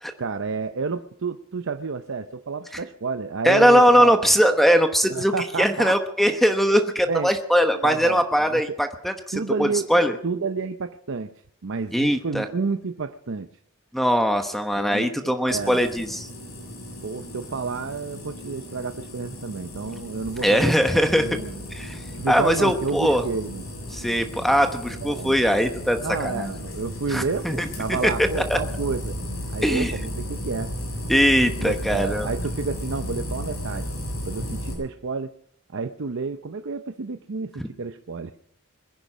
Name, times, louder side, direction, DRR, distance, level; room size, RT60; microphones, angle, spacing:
voice 1, 0.2-4.2 5.1-6.0 7.1-7.3 7.8-8.8 9.3-9.9 10.2-11.3 11.6-13.5 14.8-15.8 17.0-21.6 22.1-23.6 24.9-25.4 26.0-29.2 29.5-30.7 31.6-33.9 34.2-35.3 35.7-37.5 37.8-38.3, right 4 dB, 60° right, 8 dB, 0.6 m, -30 dB
voice 2, 3.4-5.3 5.6-10.2 11.9-12.4 13.9-16.3 20.4-21.4 21.7-23.2 23.9-26.5 27.1-28.6 29.6-29.9 31.1-32.3 37.6-37.7, equal, ahead, 6 dB, 1.0 m, -21 dB
sound 1, 15.5-34.7, equal, 75° left, 6.7 m, -34 dB
22.0 x 10.5 x 6.1 m, 0.70 s
head